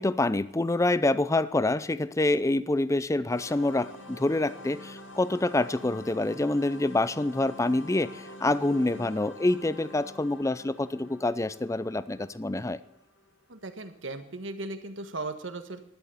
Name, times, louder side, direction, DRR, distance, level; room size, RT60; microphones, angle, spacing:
voice 1, 0.0-12.8, left 2 dB, 15° left, 16 dB, 0.5 m, -26 dB
sound 1, 3.3-14.0, left 1 dB, 80° left, 2.4 m, -47 dB
voice 2, 13.5-15.8, right 2 dB, 75° right, 8 dB, 1.6 m, -37 dB
12.5 x 10.5 x 6.9 m, 0.80 s
head